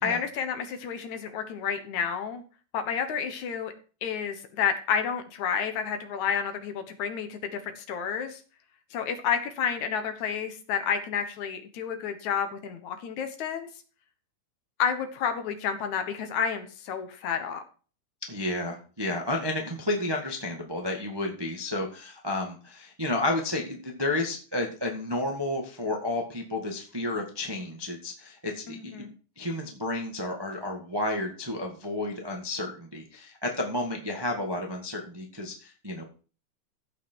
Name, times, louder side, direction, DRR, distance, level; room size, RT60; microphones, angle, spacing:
voice 1, 0.0-2.4 2.7-3.7 4.0-8.4 8.9-13.7 14.8-17.6 28.7-29.1, left 7 dB, 70° left, 8 dB, 2.5 m, -30 dB
voice 2, 18.3-29.1 29.4-36.0, left 2 dB, 15° right, 1 dB, 0.8 m, -31 dB
15.0 x 5.8 x 4.5 m, 0.38 s
omnidirectional pair, 3.6 m